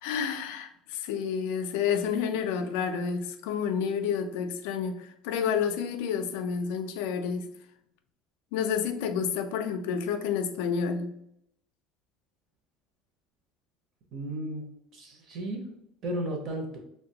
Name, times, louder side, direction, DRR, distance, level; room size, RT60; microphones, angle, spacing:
voice 1, 0.0-7.5 8.5-11.1, left 7 dB, 85° left, 6 dB, 0.3 m, -30 dB
voice 2, 14.1-14.6 14.9-15.6 16.0-16.8, right 1 dB, 35° right, 2 dB, 0.6 m, -34 dB
2.7 x 2.1 x 2.7 m, 0.76 s
cardioid pair, 170°, 0 cm